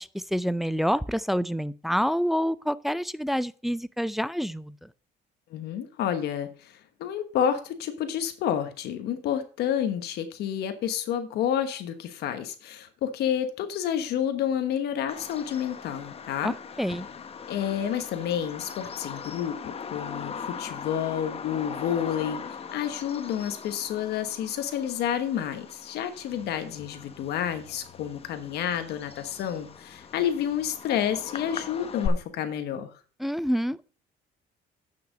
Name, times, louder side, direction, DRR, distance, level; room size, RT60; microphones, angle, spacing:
voice 1, 0.0-4.8 16.4-17.1 33.2-33.9, equal, ahead, 0.3 m, -27 dB
voice 2, 5.5-16.5 17.5-19.6 19.9-33.0, left 9 dB, 75° left, 1.2 m, -29 dB
Bird vocalization bird call bird song, 15.1-32.1, left 6 dB, 35° left, 0.9 m, -40 dB
9.0 x 5.9 x 5.0 m
cardioid pair, 110°, 17 cm